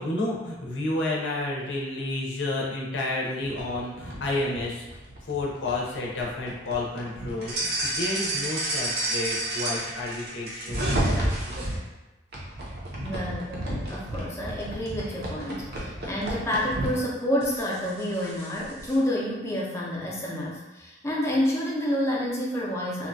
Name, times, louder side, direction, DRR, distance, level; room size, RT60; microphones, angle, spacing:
voice 1, 0.0-4.8 5.2-11.6, left 2 dB, 75° left, -3 dB, 0.6 m, -31 dB
sound 1, 3.4-11.8 12.3-17.0 17.4-19.0, right 1 dB, 55° right, 0.6 m, -31 dB
voice 2, 13.0-23.1, equal, 15° left, -4 dB, 0.5 m, -29 dB
2.8 x 2.2 x 2.6 m, 1.1 s
head